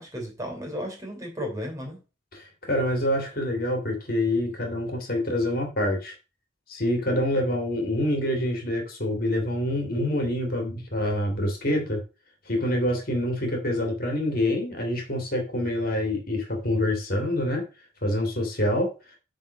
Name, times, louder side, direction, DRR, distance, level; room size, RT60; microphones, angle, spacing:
voice 1, 0.0-2.0, equal, 15° right, 0 dB, 3.3 m, -35 dB
voice 2, 2.3-6.1 6.7-12.0 12.5-17.7 18.0-18.9, left 1 dB, 50° left, 3 dB, 2.4 m, -26 dB
9.2 x 4.0 x 6.0 m, 0.31 s
head